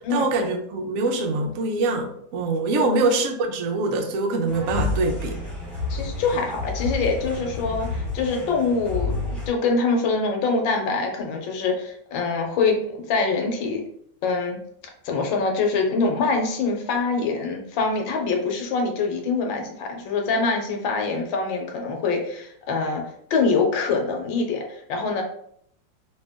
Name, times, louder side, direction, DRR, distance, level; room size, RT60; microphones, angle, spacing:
voice 1, 0.1-5.4, right 3 dB, 80° right, 3 dB, 0.7 m, -24 dB
sound 1, 4.5-9.5, left 3 dB, 15° right, 1.0 m, -30 dB
voice 2, 5.9-13.8 14.2-14.6 15.0-23.0 23.3-25.2, left 4 dB, 75° left, 2 dB, 1.4 m, -24 dB
3.2 x 2.7 x 3.5 m, 0.68 s
omnidirectional pair, 2.1 m